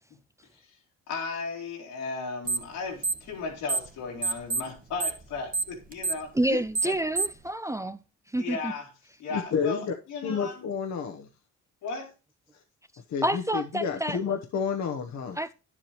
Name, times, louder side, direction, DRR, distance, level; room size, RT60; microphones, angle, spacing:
voice 1, 1.1-6.9 8.4-8.9 9.2-10.7 11.8-12.1, left 4 dB, 90° left, 3.5 m, -36 dB
sound 1, 2.4-2.7 3.0-3.9 4.2-7.5, right 4 dB, 30° right, 1.2 m, -28 dB
voice 2, 6.3-8.0 8.3-8.7 13.2-14.2 15.4-15.5, right 1 dB, 10° right, 0.5 m, -28 dB
voice 3, 9.3-9.9 10.2-11.3 13.1-15.4, left 6 dB, 65° left, 1.1 m, -30 dB
9.9 x 7.5 x 3.1 m
cardioid pair, 90°, 30 cm